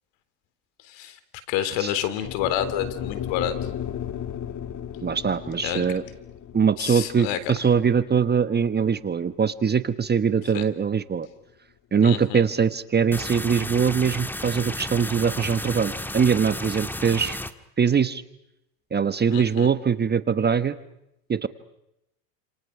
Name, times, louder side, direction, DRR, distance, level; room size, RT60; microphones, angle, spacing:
voice 1, 0.9-1.2 1.5-3.5 5.6-5.9 6.8-7.5 10.5-10.6 12.0-12.4 19.3-19.7, left 10 dB, 60° left, 13 dB, 3.8 m, -28 dB
sound 1, 2.2-10.5, left 9 dB, 35° left, 2.2 m, -36 dB
voice 2, 5.0-6.0 6.5-11.3 11.9-17.4 17.8-18.2 18.9-20.7 21.3-21.5, right 6 dB, 20° right, 13 dB, 1.2 m, -22 dB
sound 2, 13.1-17.5, left 1 dB, 5° left, 1.6 m, -33 dB
29.5 x 28.0 x 6.0 m, 0.83 s
supercardioid pair, 100°, 49 cm